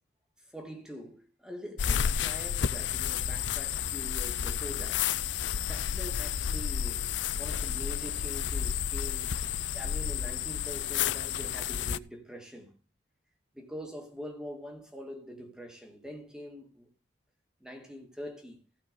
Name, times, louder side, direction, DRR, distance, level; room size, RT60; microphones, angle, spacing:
voice 1, 0.4-5.4 5.7-9.4 9.7-12.7 13.5-16.9 17.6-18.6, equal, 5° right, 2.3 m, -44 dB
sound 1, 1.8-12.0, left 8 dB, 85° left, 0.5 m, -31 dB
15.5 x 5.7 x 5.4 m
head